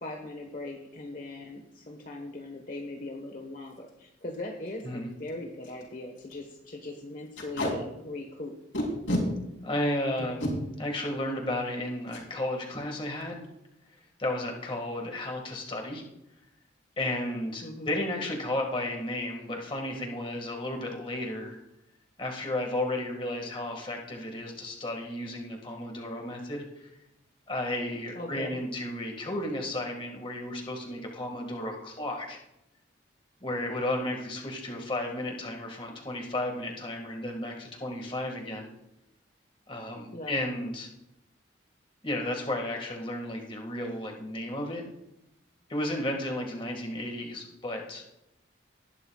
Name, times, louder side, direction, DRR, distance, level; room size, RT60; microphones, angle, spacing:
voice 1, 0.0-8.5 17.6-17.9 28.1-28.6 40.1-40.4, left 2 dB, 45° left, 1 dB, 1.2 m, -40 dB
Packing tape duct tape, 3.7-3.9 4.3-4.4 4.7-4.8 5.3-5.4 5.6-5.8 6.2-6.3 7.4-7.7 8.7-9.2 10.2-10.5 12.1-12.3 12.6-12.8 13.0-13.5, left 1 dB, 80° left, 4.1 m, -30 dB
voice 2, 9.6-10.5 10.8-13.5 14.2-16.0 17.0-21.6 22.2-26.9 27.5-32.4 33.4-38.7 39.7-40.9 42.0-44.8 45.7-48.0, left 1 dB, 25° left, 2 dB, 1.8 m, -33 dB
19.0 x 11.0 x 2.4 m, 0.86 s
head